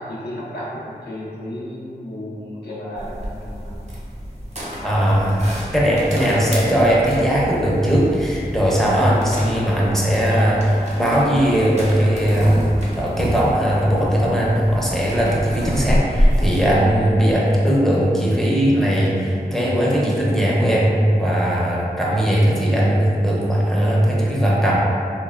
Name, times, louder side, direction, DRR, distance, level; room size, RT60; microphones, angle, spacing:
voice 1, 0.0-3.7 4.9-5.1 5.4-5.7 10.2-10.5 16.9-17.1, left 1 dB, 80° left, -8 dB, 0.5 m, -33 dB
sound 1, 3.0-16.8, equal, 45° right, 0.6 m, -27 dB
voice 2, 4.8-5.4 5.7-10.6 11.0-12.6 13.0-24.8, equal, ahead, -6 dB, 0.5 m, -18 dB
3.0 x 2.2 x 2.3 m, 2.4 s
wide cardioid pair, 45°, 17 cm